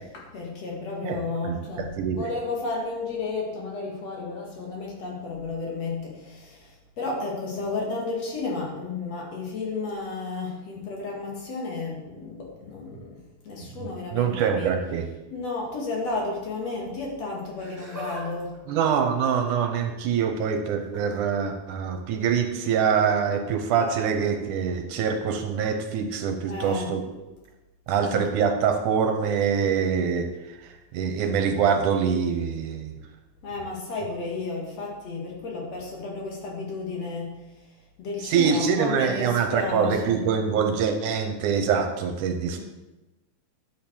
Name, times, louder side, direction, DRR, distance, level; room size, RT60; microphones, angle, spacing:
voice 1, 0.1-1.9 2.2-6.7 7.0-14.7 15.3-18.5 26.4-26.9 28.0-28.2 33.4-37.3 38.0-40.2 42.5-42.6, left 3 dB, 55° left, -2 dB, 2.6 m, -32 dB
voice 2, 1.0-2.3 13.8-15.1 18.7-27.0 27.9-30.3 30.9-32.9 38.2-42.6, right 7 dB, 75° right, 5 dB, 2.3 m, -24 dB
Laughter, 17.4-18.2 18.5-19.9 20.8-21.2 22.5-22.7 23.6-23.7, left 1 dB, 5° right, 2.2 m, -41 dB
11.0 x 7.2 x 4.5 m, 1.1 s
omnidirectional pair, 3.7 m